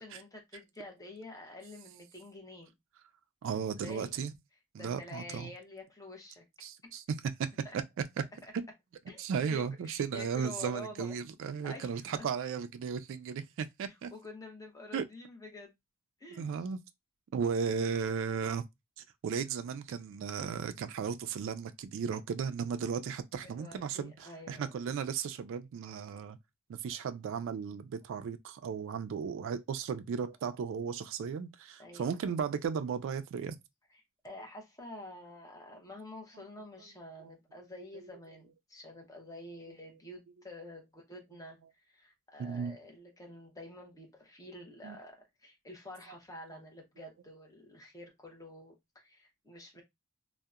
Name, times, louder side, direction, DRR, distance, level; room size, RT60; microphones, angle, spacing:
voice 1, 0.0-2.7 3.5-4.1 4.8-6.5 6.8-6.9 7.6-7.8 8.4-8.5 9.1-9.2 9.5-11.1 11.6-12.3 13.8-15.7 16.2-16.7 23.4-24.7 26.8-26.9 31.8-32.2 34.2-49.8, left 1 dB, 15° left, 0.7 m, -48 dB
voice 2, 3.4-4.3 4.7-5.5 6.6-7.2 8.5-8.6 9.2-14.1 14.9-15.0 16.4-16.8 17.3-18.6 19.0-26.4 26.7-33.6 36.4-36.5 37.2-37.3 42.4-42.8 44.8-45.0, right 6 dB, 60° right, 0.3 m, -35 dB
2.7 x 2.0 x 2.3 m
head